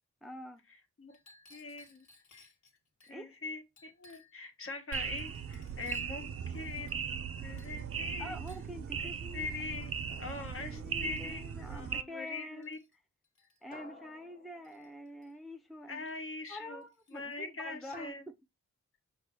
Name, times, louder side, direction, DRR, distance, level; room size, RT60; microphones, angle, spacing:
voice 1, 0.2-0.6 3.1-3.3 8.2-9.5 10.3-12.8 13.6-16.1 16.5-18.1, left 1 dB, ahead, 0.5 m, -46 dB
Chink clink, 1.1-3.2 3.8-4.4 4.9-6.2 6.8-7.3 7.6-7.9 8.5-8.7 9.4-9.6 10.4-10.5 10.9-11.6 12.3-12.9 13.2-13.6 14.6-15.3 16.1-16.2 16.5-17.4, left 3 dB, 70° left, 1.8 m, -62 dB
voice 2, 1.5-2.0 3.0-7.1 7.4-8.3 9.3-9.9 10.2-11.4 11.7-12.8 15.9-16.8 17.1-18.2, left 3 dB, 50° left, 1.1 m, -42 dB
sound 1, 4.9-12.0, right 7 dB, 50° right, 0.5 m, -39 dB
sound 2, 10.1-11.3 13.7-15.4 17.9-18.1, left 3 dB, 30° left, 1.0 m, -55 dB
6.5 x 2.7 x 5.5 m
wide cardioid pair, 160°, 29 cm